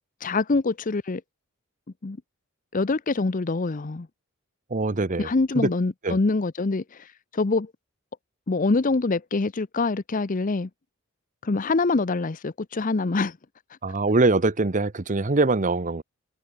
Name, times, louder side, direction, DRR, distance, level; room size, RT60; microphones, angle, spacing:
voice 1, 0.2-1.2 2.0-2.2 2.7-4.1 5.2-7.1 7.3-7.7 8.5-10.7 11.4-13.4, left 3 dB, 35° left, 0.6 m, -25 dB
voice 2, 4.7-5.3 5.6-5.7 6.0-6.2 13.8-16.0, right 3 dB, 35° right, 0.8 m, -23 dB
head